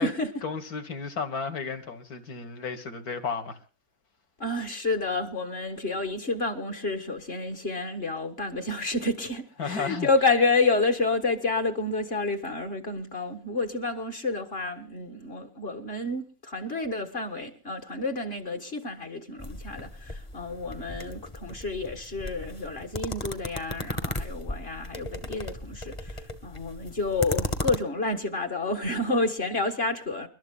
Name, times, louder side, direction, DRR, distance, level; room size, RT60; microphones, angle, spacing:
voice 1, 0.4-3.6 9.6-10.1, left 5 dB, 70° left, 2.1 m, -33 dB
voice 2, 4.4-30.3, left 3 dB, 40° left, 1.7 m, -29 dB
sound 1, 19.4-27.8, left 1 dB, 20° left, 1.2 m, -36 dB
29.5 x 12.5 x 2.4 m
omnidirectional pair, 1.7 m